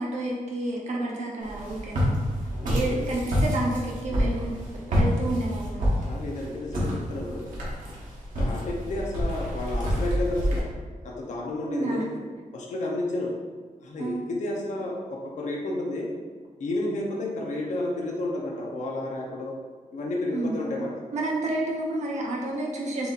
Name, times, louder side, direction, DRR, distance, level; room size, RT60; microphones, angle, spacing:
voice 1, 0.0-2.1 2.7-4.5 4.9-5.8 11.6-12.1 14.0-14.2 20.3-20.6 21.1-23.1, right 2 dB, 55° right, -3 dB, 0.9 m, -30 dB
Walk footsteps, 1.4-10.6, equal, 70° right, 1.3 m, -28 dB
voice 2, 2.4-3.0 5.9-7.5 8.4-10.7 11.0-12.1 12.5-13.4 13.8-16.1 16.6-19.6 19.9-20.9, left 2 dB, 60° left, -1 dB, 0.6 m, -31 dB
6.8 x 2.8 x 2.4 m, 1.4 s
wide cardioid pair, 175°, 14 cm